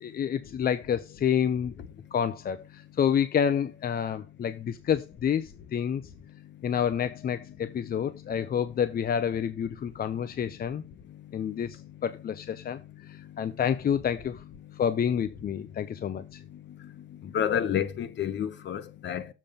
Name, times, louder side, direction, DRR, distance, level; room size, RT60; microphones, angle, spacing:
voice 1, 0.0-1.7 2.1-6.0 6.6-10.8 11.3-14.4 14.7-16.4, left 8 dB, 50° left, 0.7 m, -29 dB
voice 2, 17.2-19.3, left 9 dB, 65° left, 1.1 m, -29 dB
7.5 x 5.2 x 5.6 m
cardioid pair, 90°, 20 cm